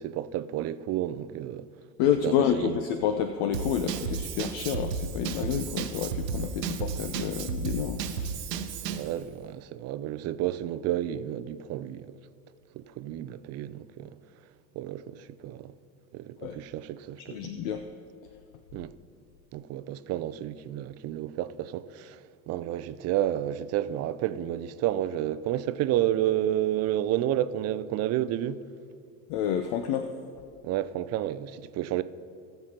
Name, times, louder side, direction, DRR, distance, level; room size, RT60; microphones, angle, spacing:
voice 1, 0.0-1.6 2.2-2.8 8.9-12.2 12.7-14.2 14.8-15.7 16.1-17.4 18.7-18.9 19.5-22.2 22.5-28.6 30.6-32.0, right 12 dB, 35° right, 0.4 m, -31 dB
voice 2, 2.0-8.3 16.4-16.6 17.3-17.8 29.3-30.1, left 8 dB, 55° left, 0.7 m, -29 dB
Drum kit / Drum, 3.5-9.1, right 6 dB, 85° right, 0.9 m, -33 dB
19.0 x 6.8 x 2.9 m
hypercardioid pair, 80°, 48 cm